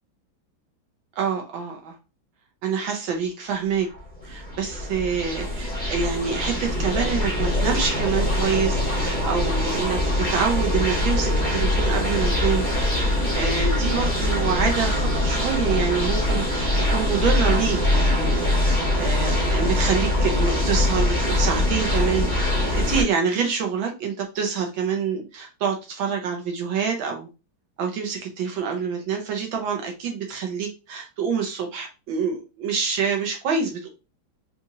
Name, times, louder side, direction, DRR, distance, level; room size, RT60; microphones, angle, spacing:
voice 1, 1.2-1.9 2.6-3.9 4.2-12.7 13.3-18.4 18.9-22.6 22.8-27.3 27.8-33.9, right 6 dB, 75° right, 2 dB, 1.5 m, -26 dB
sound 1, 3.9-23.0, left 1 dB, 5° left, 1.1 m, -23 dB
4.1 x 2.5 x 2.7 m, 0.29 s
omnidirectional pair, 2.2 m